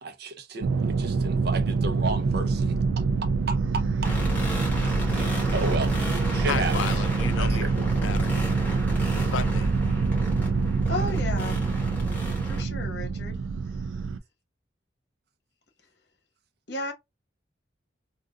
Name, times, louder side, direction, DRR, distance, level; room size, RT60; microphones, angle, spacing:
voice 1, 0.0-2.8 3.5-3.6 5.1-5.9 6.3-6.7 7.4-7.7, right 3 dB, 55° right, 0.7 m, -33 dB
sound 1, 0.6-14.2, right 4 dB, 90° right, 0.4 m, -26 dB
sound 2, 4.0-12.6, equal, 10° left, 1.1 m, -31 dB
voice 2, 6.5-8.5 9.1-10.1, left 7 dB, 85° left, 0.4 m, -34 dB
voice 3, 10.9-11.6 12.4-13.4 16.7-16.9, left 2 dB, 60° left, 1.0 m, -33 dB
3.7 x 2.5 x 2.3 m
head